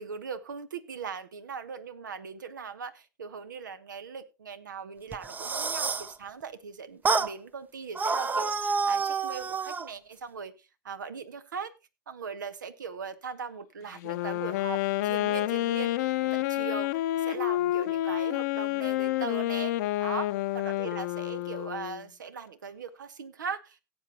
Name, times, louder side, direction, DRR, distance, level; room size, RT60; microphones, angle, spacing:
voice 1, 0.0-11.7 12.1-19.7 20.0-23.8, right 6 dB, 80° right, 1.1 m, -39 dB
sound 1, 5.1-6.1 7.0-7.3 7.9-9.9, right 4 dB, 15° right, 0.6 m, -28 dB
Wind instrument woodwind instrument, 13.9-22.0, left 15 dB, 65° left, 0.7 m, -29 dB
17.0 x 8.1 x 2.9 m
hypercardioid pair, 85°, 10 cm